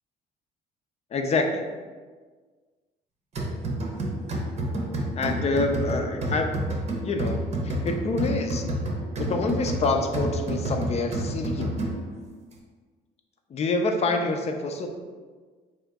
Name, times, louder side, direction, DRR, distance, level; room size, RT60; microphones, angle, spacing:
voice 1, 1.1-1.6 5.1-6.7 7.0-8.7 9.2-11.8 13.5-14.9, left 3 dB, 40° left, 4 dB, 0.5 m, -27 dB
sound 1, 3.4-12.2, right 1 dB, 40° right, 0.8 m, -30 dB
3.8 x 2.7 x 3.4 m, 1.5 s
cardioid pair, 110°, 17 cm